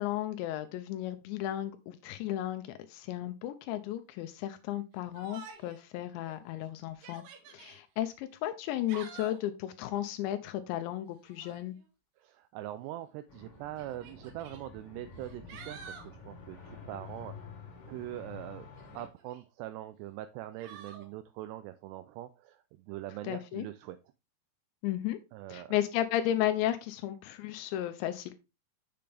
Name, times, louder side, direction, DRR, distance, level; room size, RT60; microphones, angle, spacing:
voice 1, 0.0-2.6 2.9-7.2 7.5-11.8 23.2-23.7 24.8-25.2 25.5-28.3, left 12 dB, 85° left, 10 dB, 2.8 m, -34 dB
Yell, 5.1-5.8 6.3-6.4 6.9-7.8 8.6-9.5 11.2-11.7 12.8-12.9 13.8-14.6 15.2-16.1 18.8-19.4 20.6-21.1, right 6 dB, 65° right, 3.1 m, -49 dB
voice 2, 12.2-17.5 17.9-18.7 18.9-24.0 25.3-25.8, right 14 dB, 85° right, 11 dB, 2.4 m, -42 dB
sound 1, 13.3-19.1, left 5 dB, 45° left, 2.0 m, -49 dB
7.7 x 6.9 x 3.4 m, 0.28 s
omnidirectional pair, 5.2 m